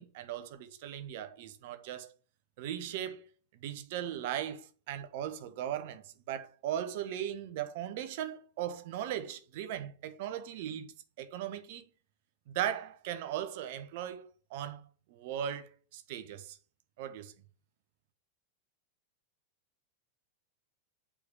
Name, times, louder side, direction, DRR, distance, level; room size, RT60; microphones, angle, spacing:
voice 1, 0.0-2.1 2.6-3.2 3.6-10.9 11.2-11.8 12.5-14.2 14.5-14.8 15.1-16.6 17.0-17.3, right 10 dB, 50° right, 1.3 m, -38 dB
8.3 x 5.2 x 5.3 m
figure-of-eight pair, 90°, 0 cm